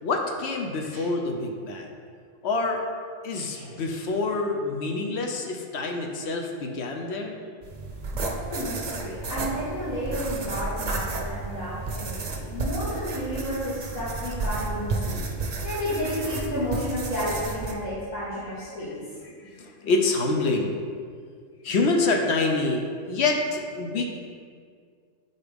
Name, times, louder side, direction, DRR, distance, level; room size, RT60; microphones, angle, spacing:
voice 1, 0.0-1.9 2.4-2.8 3.2-7.4 19.2-20.8 21.6-24.1, left 3 dB, 65° left, 2 dB, 0.9 m, -26 dB
voice 2, 3.3-3.8 8.2-15.2 15.6-19.0, equal, 90° left, -11 dB, 1.9 m, -32 dB
sound 1, 7.6-17.7, right 3 dB, 45° right, 0.6 m, -32 dB
8.4 x 4.1 x 3.4 m, 2.1 s
omnidirectional pair, 1.3 m